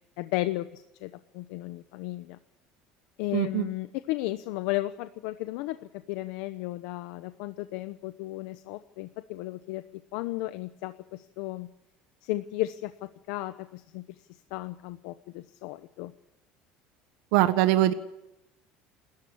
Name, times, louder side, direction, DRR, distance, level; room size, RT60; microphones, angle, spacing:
voice 1, 0.2-2.4 3.2-5.8 6.1-9.8 10.1-11.7 12.2-14.0 14.3-16.1, left 17 dB, 80° left, 11 dB, 0.9 m, -34 dB
voice 2, 3.3-3.7 17.3-17.9, right 14 dB, 80° right, 10 dB, 1.4 m, -22 dB
28.5 x 13.5 x 8.5 m, 0.89 s
cardioid pair, 165°, 3 cm